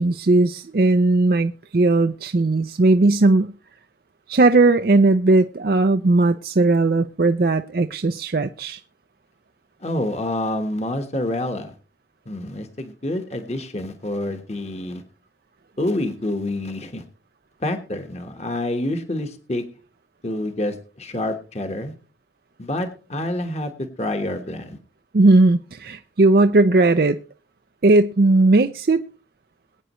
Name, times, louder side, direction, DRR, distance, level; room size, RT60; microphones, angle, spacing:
voice 1, 0.0-3.5 4.3-8.8 25.1-27.2 27.8-29.0, right 2 dB, 55° right, 8 dB, 0.5 m, -17 dB
voice 2, 9.8-11.7 12.2-15.0 15.8-17.0 17.6-19.6 20.2-21.9 22.6-23.7 24.0-24.8, left 1 dB, 35° left, 7 dB, 1.4 m, -27 dB
22.0 x 9.1 x 3.1 m, 0.36 s
head